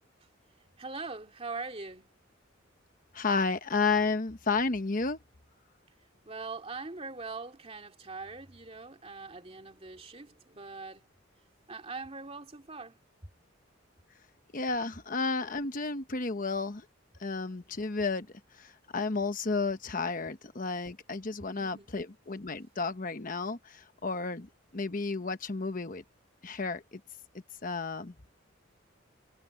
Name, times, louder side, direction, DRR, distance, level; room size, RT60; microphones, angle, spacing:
voice 1, 0.8-2.1 6.3-11.0 11.7-13.0 21.5-21.9, right 3 dB, 30° right, 2.6 m, -42 dB
voice 2, 3.1-5.2 14.5-16.8 17.2-18.3 18.6-24.5 24.7-26.0 26.4-27.0 27.6-28.1, left 4 dB, 45° left, 1.0 m, -32 dB
head